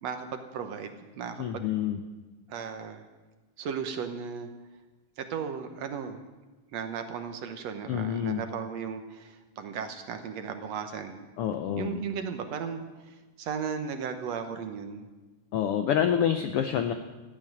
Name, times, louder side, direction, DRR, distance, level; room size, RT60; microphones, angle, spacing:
voice 1, 0.0-1.7 2.5-3.1 3.6-4.5 5.2-6.2 6.7-11.2 11.8-12.8 13.1-15.1, right 6 dB, 65° right, 7 dB, 2.1 m, -36 dB
voice 2, 1.4-2.0 7.9-8.4 11.4-12.0 15.5-16.9, left 9 dB, 80° left, 7 dB, 1.3 m, -27 dB
15.0 x 8.7 x 9.3 m, 1.2 s
omnidirectional pair, 3.5 m